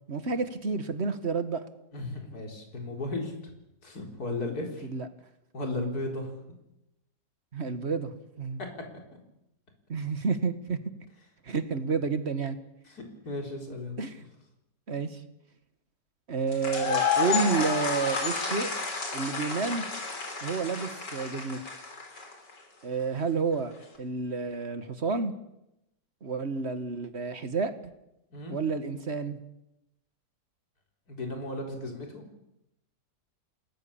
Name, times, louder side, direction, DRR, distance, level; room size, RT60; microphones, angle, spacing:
voice 1, 0.0-1.6 4.8-5.1 7.5-8.6 9.9-10.8 11.4-12.6 14.0-14.2 14.9-15.2 16.3-18.7 19.1-19.9 20.4-21.6 22.8-23.7 24.0-25.3 26.2-27.7 28.5-29.4, right 4 dB, 40° right, 10 dB, 1.7 m, -30 dB
voice 2, 1.9-3.3 3.8-4.9 5.5-6.3 12.9-14.0 28.3-28.5 31.1-32.2, left 2 dB, 60° left, 2 dB, 4.7 m, -35 dB
sound 1, 16.5-22.5, left 5 dB, 80° left, 4.4 m, -31 dB
28.5 x 19.5 x 7.2 m, 0.88 s
omnidirectional pair, 1.8 m